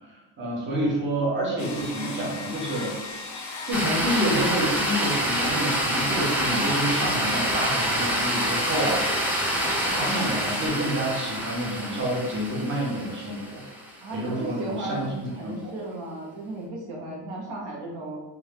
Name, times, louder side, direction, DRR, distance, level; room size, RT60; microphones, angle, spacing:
voice 1, 0.0-2.9 3.6-9.0 9.8-13.6 14.1-15.7, right 1 dB, 25° right, -5 dB, 1.1 m, -28 dB
sound 1, 1.6-10.7, left 3 dB, 40° left, 0.6 m, -38 dB
sound 2, 3.7-14.0, equal, 5° right, 0.6 m, -27 dB
voice 2, 14.0-18.2, right 2 dB, 90° right, -1 dB, 0.8 m, -35 dB
2.7 x 2.3 x 3.4 m, 1.1 s
cardioid pair, 105°, 46 cm